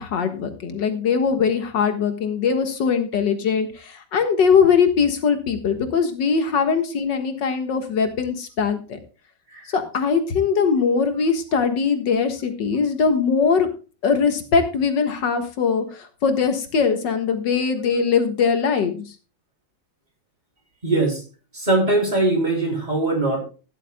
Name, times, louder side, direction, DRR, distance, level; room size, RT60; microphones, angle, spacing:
voice 1, 0.0-9.0 9.7-13.7 14.0-19.1, left 6 dB, 65° left, 7 dB, 2.2 m, -21 dB
voice 2, 20.8-21.2 21.5-23.4, right 2 dB, 20° right, 1 dB, 3.5 m, -21 dB
15.5 x 11.0 x 2.2 m, 0.34 s
omnidirectional pair, 2.1 m